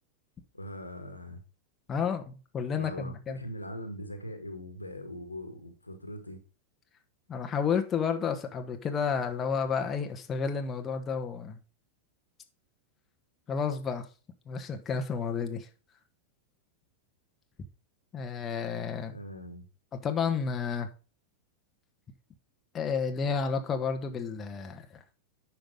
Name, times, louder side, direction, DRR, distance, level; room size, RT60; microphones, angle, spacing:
voice 1, 0.5-1.4 2.7-6.4 19.1-19.7, equal, 85° left, 1.8 m, -41 dB
voice 2, 1.9-3.4 7.3-11.6 13.5-14.1 14.5-15.7 18.1-19.2 19.9-20.9 22.7-25.0, left 6 dB, 25° left, 1.3 m, -31 dB
10.0 x 5.9 x 3.7 m
figure-of-eight pair, 90°, 0 cm